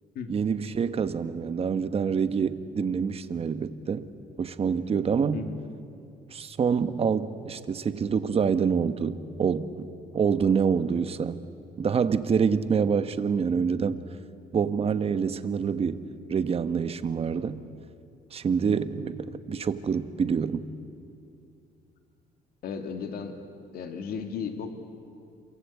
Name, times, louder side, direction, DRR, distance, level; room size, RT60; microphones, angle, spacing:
voice 1, 0.3-4.1 4.4-5.4 6.3-9.9 10.1-11.4 11.8-14.0 14.5-16.0 16.3-17.6 18.3-20.6, right 6 dB, 35° right, 11 dB, 1.2 m, -26 dB
voice 2, 22.6-23.4 23.7-24.7, left 6 dB, 65° left, 6 dB, 2.4 m, -34 dB
27.5 x 23.5 x 8.5 m, 2.5 s
cardioid pair, 110°, 17 cm